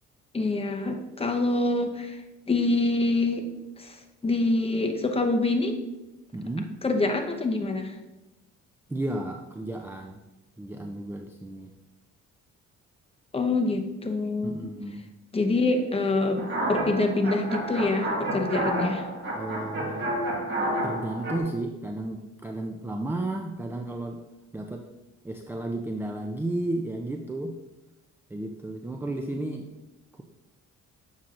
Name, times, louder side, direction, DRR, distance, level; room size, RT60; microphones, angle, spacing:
voice 1, 0.3-2.2 2.5-3.4 3.8-5.8 6.8-8.0 13.3-14.7 15.3-19.0, left 2 dB, 20° left, 4 dB, 0.8 m, -26 dB
voice 2, 6.3-6.8 8.9-10.2 10.6-11.7 14.4-15.0 19.3-20.1 20.8-24.2 24.5-24.9 25.2-27.6 28.3-29.7, right 2 dB, 10° right, 4 dB, 0.4 m, -33 dB
sound 1, 16.4-21.4, right 1 dB, 40° right, 1.8 m, -30 dB
7.3 x 5.5 x 2.5 m, 1.0 s
cardioid pair, 90°, 30 cm